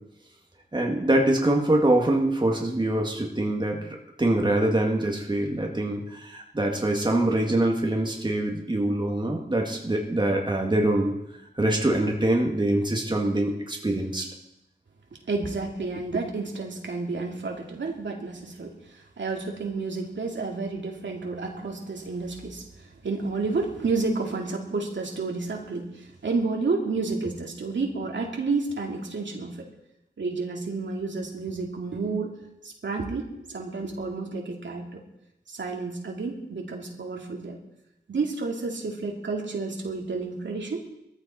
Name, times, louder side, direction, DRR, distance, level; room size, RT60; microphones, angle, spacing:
voice 1, 0.7-11.1 11.6-14.3, right 1 dB, 25° right, 0 dB, 2.1 m, -24 dB
voice 2, 15.3-29.7 30.2-32.3 32.6-35.0 35.5-37.6 38.1-40.8, right 3 dB, 75° right, 0 dB, 2.5 m, -30 dB
18.5 x 14.0 x 4.3 m, 0.86 s
wide cardioid pair, 80°, 19 cm